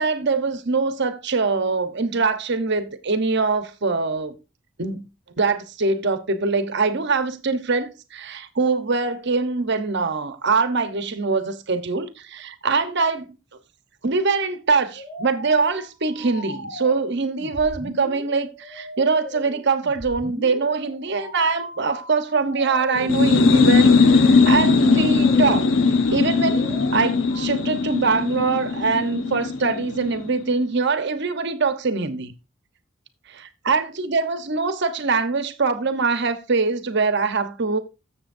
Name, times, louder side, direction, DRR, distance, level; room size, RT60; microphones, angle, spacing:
voice 1, 0.0-4.4 4.8-5.1 5.4-13.4 14.0-25.7 26.1-32.3 33.7-37.8, right 4 dB, 60° right, 1.0 m, -23 dB
sound 1, 14.9-27.5, left 1 dB, 55° left, 5.9 m, -38 dB
sound 2, 23.0-30.5, left 4 dB, 75° left, 0.8 m, -19 dB
13.5 x 7.0 x 2.6 m
head